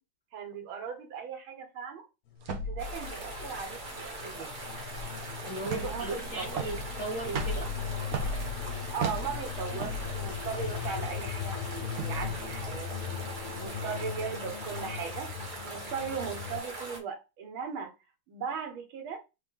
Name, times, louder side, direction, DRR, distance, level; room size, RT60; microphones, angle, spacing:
voice 1, 0.3-2.1 2.5-4.5 5.6-6.6 8.9-12.9 13.6-15.3 15.6-17.9 18.3-19.2, right 6 dB, 85° right, 2.0 m, -38 dB
sound 1, 2.3-16.6, left 9 dB, 85° left, 1.7 m, -39 dB
sound 2, 2.4-13.6, right 1 dB, 55° right, 1.1 m, -38 dB
sound 3, 2.8-17.0, right 2 dB, 35° right, 0.8 m, -41 dB
voice 2, 5.5-7.7, right 2 dB, 35° left, 1.7 m, -37 dB
4.1 x 3.2 x 3.5 m
omnidirectional pair, 2.2 m